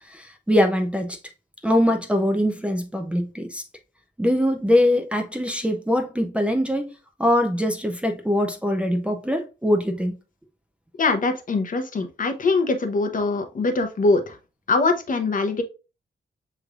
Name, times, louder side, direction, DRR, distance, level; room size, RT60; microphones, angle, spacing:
voice 1, 0.1-1.2 1.6-3.6 4.2-6.9 7.2-10.2, left 1 dB, 5° right, 0.5 m, -22 dB
voice 2, 11.0-14.4 14.7-15.6, left 3 dB, 50° left, 0.8 m, -22 dB
6.3 x 3.1 x 2.4 m
wide cardioid pair, 125°, 18 cm